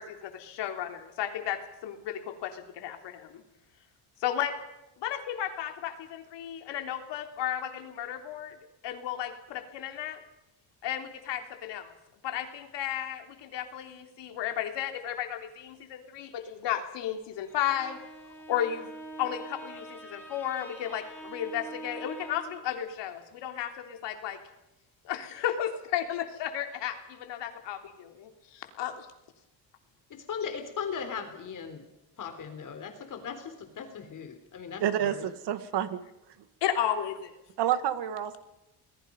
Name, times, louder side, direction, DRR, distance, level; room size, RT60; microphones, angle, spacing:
voice 1, 0.0-3.4 4.2-4.5 5.0-8.6 8.8-10.2 10.8-11.9 12.2-18.0 18.5-18.9 19.2-24.4 25.0-29.1 36.6-37.3, left 10 dB, 75° left, 5 dB, 3.5 m, -34 dB
Bowed string instrument, 17.3-22.7, right 2 dB, 5° left, 6.9 m, -45 dB
voice 2, 30.1-31.8 32.2-35.3, left 6 dB, 45° left, 7 dB, 3.9 m, -38 dB
voice 3, 34.8-36.0 37.6-38.4, right 10 dB, 70° right, 11 dB, 2.1 m, -29 dB
29.0 x 21.0 x 5.4 m, 0.91 s
cardioid pair, 135°, 42 cm